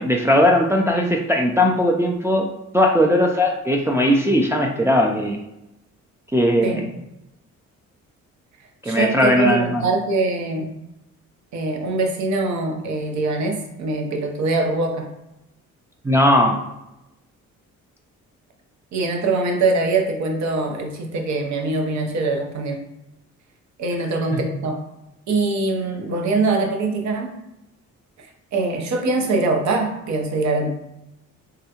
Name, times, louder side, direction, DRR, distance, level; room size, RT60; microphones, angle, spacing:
voice 1, 0.0-2.5 2.7-5.4 6.3-6.8 8.8-9.8 16.0-16.6 24.3-24.4, left 1 dB, 10° right, 0 dB, 0.4 m, -18 dB
voice 2, 8.8-10.7 11.5-15.1 18.9-22.8 23.8-24.8 25.3-27.4 28.2-30.7, right 3 dB, 65° right, 3 dB, 0.7 m, -23 dB
3.6 x 2.3 x 2.8 m, 0.89 s
cardioid pair, 90°, 30 cm